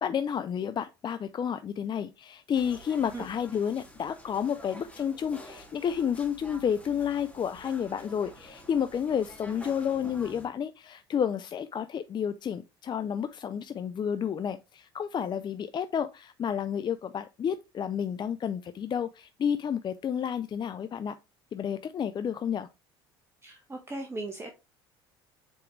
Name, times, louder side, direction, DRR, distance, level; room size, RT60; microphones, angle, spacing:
voice 1, 0.0-21.2 21.5-22.7, left 8 dB, 35° left, 0.5 m, -31 dB
sound 1, 2.5-10.5, equal, 10° left, 2.6 m, -49 dB
voice 2, 23.4-24.5, right 2 dB, 20° right, 1.4 m, -38 dB
7.2 x 4.5 x 3.3 m
hypercardioid pair, 65°, 13 cm